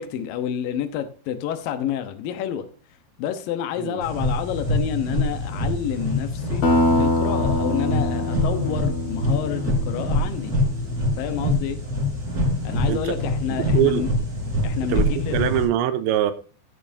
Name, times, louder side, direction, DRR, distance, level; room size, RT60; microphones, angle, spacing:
voice 1, 0.0-2.7 3.2-6.6 7.0-10.5 11.2-11.8 12.6-14.1 14.6-15.6, left 9 dB, 85° left, 2.0 m, -29 dB
sound 1, 4.0-15.6, left 1 dB, 20° right, 4.1 m, -25 dB
sound 2, 6.6-10.9, left 1 dB, 65° left, 1.6 m, -24 dB
voice 2, 13.5-14.0 14.9-16.3, right 11 dB, 80° right, 2.9 m, -23 dB
14.5 x 8.7 x 2.7 m
omnidirectional pair, 5.6 m